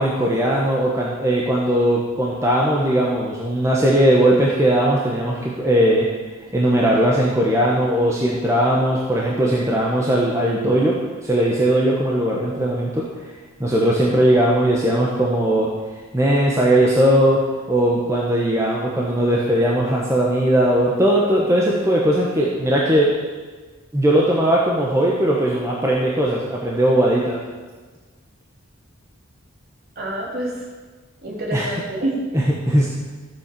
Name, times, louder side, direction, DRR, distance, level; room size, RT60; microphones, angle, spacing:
voice 1, 0.0-6.1 6.5-10.9 11.2-13.0 13.6-15.7 16.1-17.4 17.7-23.1 23.9-27.4 31.5-31.7 32.3-32.9, right 1 dB, 15° right, -3 dB, 1.3 m, -18 dB
voice 2, 29.9-30.7 31.2-32.2, right 1 dB, 45° right, -3 dB, 3.4 m, -27 dB
14.0 x 7.6 x 6.9 m, 1.4 s
head